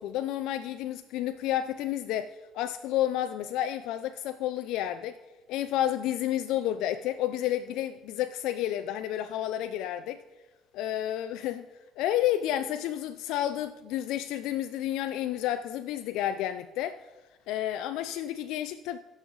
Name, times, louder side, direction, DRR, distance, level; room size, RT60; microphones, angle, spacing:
voice 1, 0.0-5.1 5.5-10.2 10.7-11.6 12.0-17.0 17.5-19.0, left 12 dB, 80° left, 0.4 m, -30 dB
16.5 x 6.4 x 3.9 m
supercardioid pair, 65°, 0 cm